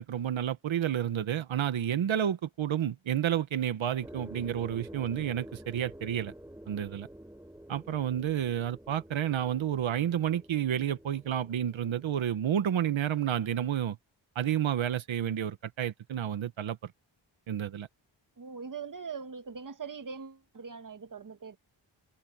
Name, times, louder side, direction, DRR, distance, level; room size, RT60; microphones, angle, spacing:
voice 1, 0.0-6.3 6.7-7.1 7.7-14.0 14.3-16.9 17.5-17.9, right 10 dB, 90° right, 1.3 m, -30 dB
sound 1, 4.0-12.2, right 1 dB, 5° right, 7.5 m, -49 dB
voice 2, 18.4-21.6, right 5 dB, 45° right, 1.7 m, -41 dB
cardioid pair, 65°, 45 cm